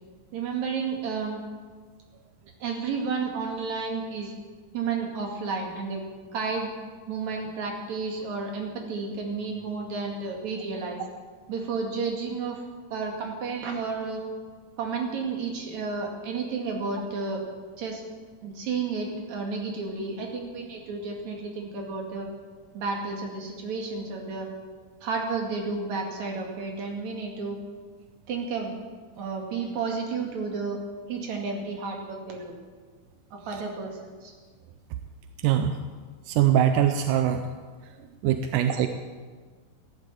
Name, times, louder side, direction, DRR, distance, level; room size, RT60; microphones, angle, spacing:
voice 1, 0.3-1.4 2.6-4.3 4.7-6.1 6.3-6.7 7.1-11.0 11.5-12.6 12.9-14.2 14.8-17.4 17.8-18.0 18.4-22.3 22.7-24.5 25.0-27.6 28.3-28.7 29.1-30.8 31.1-32.5 33.3-34.3, right 4 dB, 55° right, 1 dB, 3.4 m, -31 dB
voice 2, 35.4-35.8 36.3-37.4 38.2-38.9, right 10 dB, 80° right, 8 dB, 2.0 m, -22 dB
15.0 x 11.0 x 8.5 m, 1.5 s
omnidirectional pair, 4.1 m